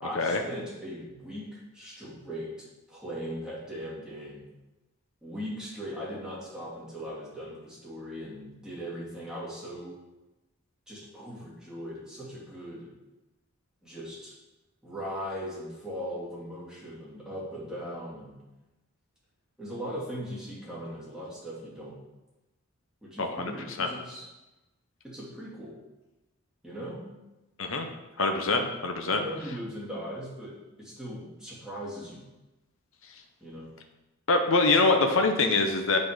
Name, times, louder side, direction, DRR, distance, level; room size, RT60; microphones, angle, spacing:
voice 1, 0.0-4.4 5.2-9.9 10.9-12.9 13.8-14.3 14.8-18.3 19.6-22.0 23.0-24.3 25.0-25.7 26.6-27.1 28.5-28.7 29.1-30.5 30.8-32.2 33.4-33.7, equal, 5° right, -8 dB, 2.3 m, -39 dB
voice 2, 23.2-23.5 23.8-23.9 27.6-27.9 28.2-29.2 34.3-36.0, left 3 dB, 65° left, 4 dB, 0.8 m, -24 dB
9.4 x 4.2 x 5.0 m, 1.0 s
head